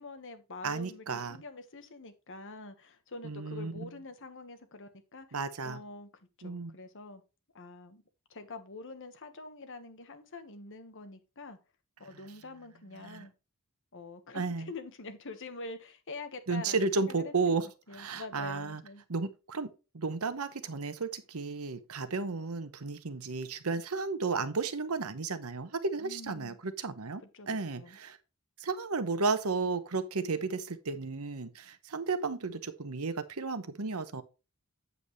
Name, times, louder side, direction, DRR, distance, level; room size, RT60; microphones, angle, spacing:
voice 1, 0.0-6.1 6.4-7.2 7.5-8.0 8.3-11.6 12.0-13.3 13.9-17.6 17.9-19.0 26.0-26.6 27.3-28.0, left 3 dB, 60° left, 1.3 m, -46 dB
voice 2, 0.6-1.4 3.2-3.9 5.3-5.8 6.4-6.7 13.0-13.3 14.3-14.7 16.5-17.7 17.9-18.8 19.1-19.7 19.9-28.2 28.6-34.2, right 4 dB, 75° right, 1.0 m, -33 dB
8.3 x 7.9 x 3.1 m
head